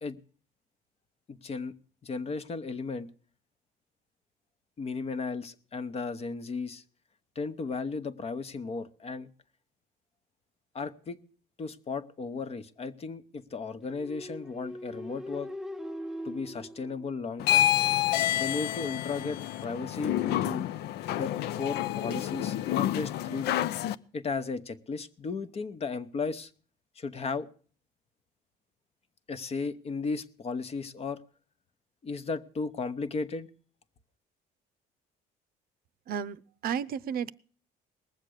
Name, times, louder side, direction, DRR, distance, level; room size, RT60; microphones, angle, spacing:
voice 1, 1.3-1.7 2.0-3.1 4.8-6.8 7.3-9.3 10.7-11.2 11.6-15.5 16.2-17.7 18.3-20.7 21.2-23.5 24.1-26.5 27.0-27.5 29.3-31.2 32.0-33.5, left 4 dB, 35° left, 12 dB, 0.9 m, -35 dB
sound 1, 13.9-17.7, equal, 5° right, 0.6 m, -41 dB
sound 2, 17.4-24.0, left 13 dB, 75° left, 0.5 m, -28 dB
voice 2, 36.1-37.3, right 8 dB, 60° right, 14 dB, 0.6 m, -33 dB
19.5 x 7.4 x 6.4 m, 0.43 s
cardioid pair, 110°, 17 cm